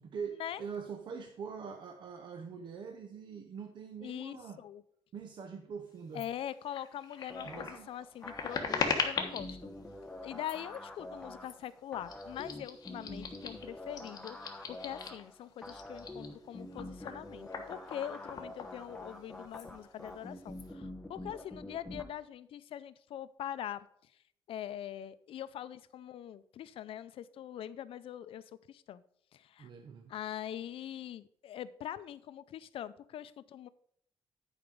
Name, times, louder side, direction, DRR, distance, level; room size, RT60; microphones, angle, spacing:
voice 1, 0.0-4.6 5.1-6.2 7.4-7.9 29.6-30.1, right 6 dB, 55° right, 5 dB, 0.8 m, -43 dB
voice 2, 4.0-4.8 6.1-9.7 10.2-23.9 24.5-29.0 29.3-29.7 30.1-33.7, left 11 dB, 75° left, 15 dB, 0.5 m, -43 dB
sound 1, 6.1-6.3 6.7-9.6 10.4-10.8 11.4-11.7 12.0-15.3 15.6-19.2 19.5-19.7 20.0-20.7, left 5 dB, 40° left, 1.3 m, -40 dB
sound 2, 7.3-22.0, left 1 dB, 5° left, 0.9 m, -46 dB
10.0 x 5.0 x 5.3 m, 0.67 s
wide cardioid pair, 165°, 10 cm